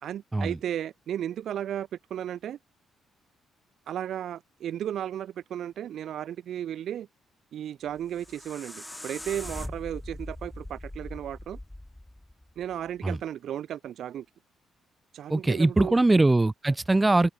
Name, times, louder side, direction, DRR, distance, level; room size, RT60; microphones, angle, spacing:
voice 1, 0.0-2.6 3.9-7.1 7.5-11.6 12.6-14.2 15.1-16.0, right 10 dB, 70° right, 3.1 m, -34 dB
sound 1, 7.9-13.0, left 1 dB, 10° left, 5.0 m, -41 dB
voice 2, 15.3-17.3, right 2 dB, 15° right, 0.8 m, -22 dB
open air
cardioid pair, 90°, 0 cm